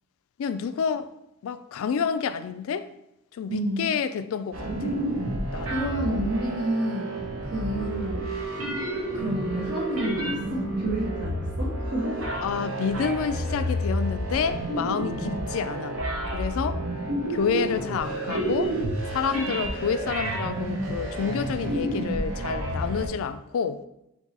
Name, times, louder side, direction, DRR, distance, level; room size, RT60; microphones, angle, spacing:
voice 1, 0.4-1.1 1.4-2.9 3.4-5.0 5.5-5.7 12.4-16.0 16.3-16.8 17.3-18.7 19.1-23.8, left 6 dB, 75° left, 0.3 m, -29 dB
voice 2, 3.5-3.9 5.7-7.2 7.5-8.3 9.1-12.3 15.2-15.5, right 1 dB, 85° right, 1.2 m, -29 dB
sound 1, 4.5-23.1, right 1 dB, 65° right, 1.0 m, -30 dB
4.6 x 3.8 x 2.8 m
head